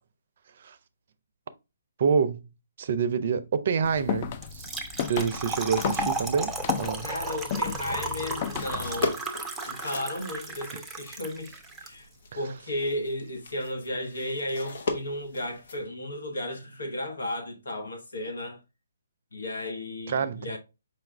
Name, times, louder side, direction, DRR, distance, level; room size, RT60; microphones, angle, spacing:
voice 1, 2.0-2.5 2.8-4.7 5.1-7.1 20.1-20.5, right 6 dB, 55° right, 0.5 m, -27 dB
sound 1, 3.8-9.0, left 8 dB, 35° left, 0.4 m, -34 dB
Trickle dribble / Fill (with liquid), 4.4-11.9, right 3 dB, 5° right, 0.6 m, -34 dB
sound 2, 5.3-15.8, left 3 dB, 60° left, 1.0 m, -39 dB
voice 2, 7.0-9.2 9.7-12.1 12.3-18.6 19.3-20.6, left 1 dB, 80° left, 1.4 m, -34 dB
5.1 x 2.4 x 3.2 m
hypercardioid pair, 145°, 0 cm